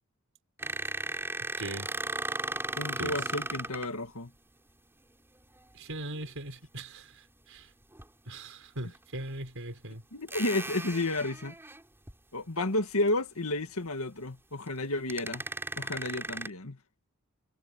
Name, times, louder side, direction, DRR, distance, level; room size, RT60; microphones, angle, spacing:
sound 1, 0.6-3.9 6.0-6.2 7.9-8.0 8.9-9.0 10.3-12.1 12.6-12.8 13.1-13.2 14.7-14.8 15.1-16.5, right 2 dB, 10° right, 5.1 m, -36 dB
voice 1, 1.6-1.9 3.0-3.1 5.7-7.1 7.5-7.7 8.3-10.0, right 1 dB, 65° right, 6.1 m, -39 dB
voice 2, 2.8-4.3 10.1-11.6 12.3-15.5 15.8-16.8, left 2 dB, 70° left, 2.1 m, -31 dB
head